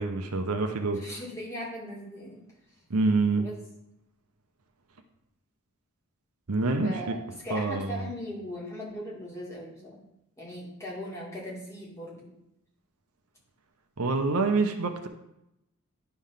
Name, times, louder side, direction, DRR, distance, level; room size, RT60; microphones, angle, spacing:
voice 1, 0.0-1.0 2.9-3.4 6.5-6.9 7.5-8.0 14.0-15.1, right 3 dB, 85° right, 5 dB, 0.8 m, -26 dB
voice 2, 0.9-2.4 3.4-3.6 6.8-10.0 10.4-12.3, equal, 15° left, -5 dB, 2.1 m, -39 dB
10.5 x 3.5 x 5.7 m, 0.86 s
head